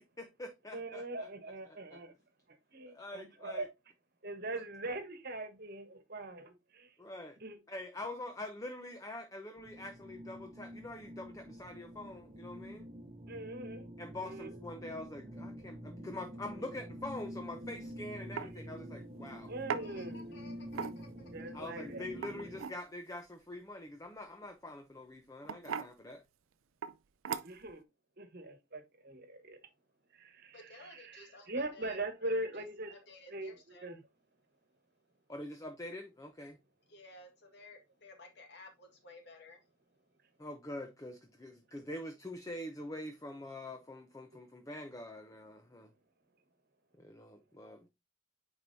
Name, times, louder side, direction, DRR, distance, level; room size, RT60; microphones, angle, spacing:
voice 1, 0.0-1.3 1.9-2.0 2.9-3.7 4.5-4.6 7.0-7.4 7.7-12.9 14.0-19.5 21.5-26.2 35.3-36.6 40.4-45.9 47.0-47.9, left 1 dB, 15° left, 0.6 m, -45 dB
voice 2, 0.7-2.1 2.7-3.7 4.2-6.9 7.4-7.6 13.3-13.9 14.2-14.5 18.4-18.5 19.5-20.3 21.3-22.1 27.4-27.8 28.2-29.6 30.1-32.9 33.3-33.5 33.8-34.0, right 1 dB, 50° right, 1.3 m, -41 dB
sound 1, 9.6-22.6, equal, 25° right, 0.8 m, -47 dB
sound 2, 17.7-17.9 18.4-18.5 19.7-19.9 20.7-21.2 22.1-22.8 24.4-24.7 25.4-25.9 26.8-27.0 27.3-27.7, right 6 dB, 85° right, 0.5 m, -38 dB
voice 3, 19.7-21.5 30.5-33.9 36.9-39.6, left 2 dB, 55° left, 1.7 m, -55 dB
8.8 x 4.5 x 2.7 m
head